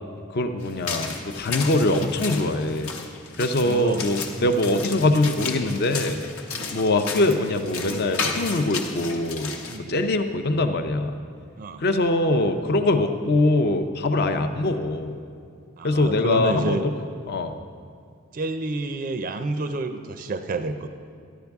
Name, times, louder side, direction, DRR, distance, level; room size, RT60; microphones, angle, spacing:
voice 1, 0.3-2.9 3.4-6.2 6.7-9.5 9.9-11.1 11.8-15.2 15.8-16.8 17.3-17.5, left 2 dB, 45° left, 7 dB, 0.5 m, -23 dB
sound 1, 0.6-9.8, left 4 dB, 70° left, 1.0 m, -33 dB
voice 2, 3.6-4.0 4.4-4.5 6.5-6.7 9.7-10.1 11.6-11.8 14.3-14.4 15.8-16.8 18.3-20.9, right 3 dB, 40° right, 8 dB, 0.4 m, -30 dB
13.0 x 11.5 x 3.5 m, 2.2 s
head